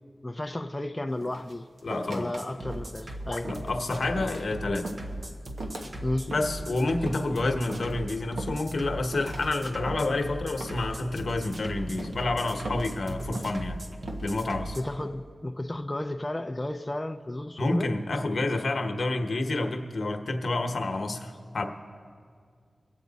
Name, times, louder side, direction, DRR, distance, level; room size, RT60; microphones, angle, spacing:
voice 1, 0.2-1.7 2.1-3.5 6.0-6.3 14.7-17.9, left 1 dB, 20° left, 5 dB, 0.5 m, -33 dB
sound 1, 1.2-2.4 2.7-3.1 3.4-3.8 4.2-4.5 4.8-5.1 5.6-5.9 6.3-6.7 7.0-7.3 7.7-8.0 8.4-8.9 9.1-9.5 9.9-10.2 10.6-11.0 11.3-11.6 12.0-12.3 12.7-13.0 13.4-13.7 14.1-14.4, right 2 dB, 85° right, 1.3 m, -40 dB
voice 2, 1.8-2.3 3.3-4.9 6.3-13.8 14.2-14.8 17.6-21.6, left 2 dB, 70° left, 5 dB, 1.0 m, -29 dB
sound 2, 2.4-14.8, right 1 dB, 50° right, 1.0 m, -39 dB
24.5 x 8.2 x 4.1 m, 2.2 s
wide cardioid pair, 75°, 0 cm